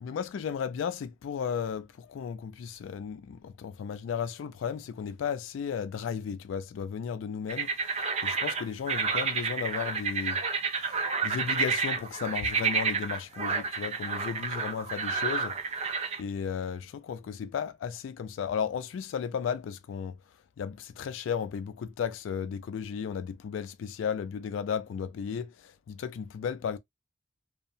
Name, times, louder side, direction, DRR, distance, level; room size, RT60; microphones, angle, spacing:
voice 1, 0.0-7.7 8.2-10.4 10.9-11.0 11.2-15.6 16.2-20.2 20.6-26.8, left 7 dB, 80° left, 0.3 m, -34 dB
sound 1, 7.5-16.2, right 5 dB, 35° right, 0.5 m, -30 dB
2.7 x 2.0 x 2.6 m
head